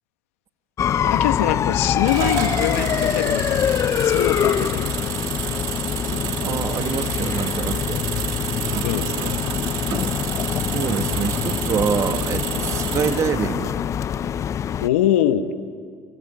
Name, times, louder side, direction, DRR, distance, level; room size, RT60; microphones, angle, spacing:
sound 1, 0.8-14.9, left 9 dB, 45° left, 0.6 m, -24 dB
voice 1, 1.0-3.6 4.0-5.2 8.8-9.4 14.8-15.5, left 11 dB, 85° left, 11 dB, 1.1 m, -23 dB
sound 2, 2.0-13.4, right 11 dB, 70° right, 2.5 m, -30 dB
voice 2, 6.4-8.0 10.5-13.7, right 7 dB, 45° right, 9 dB, 1.7 m, -26 dB
28.5 x 24.0 x 8.3 m, 2.2 s
hypercardioid pair, 75°, 7 cm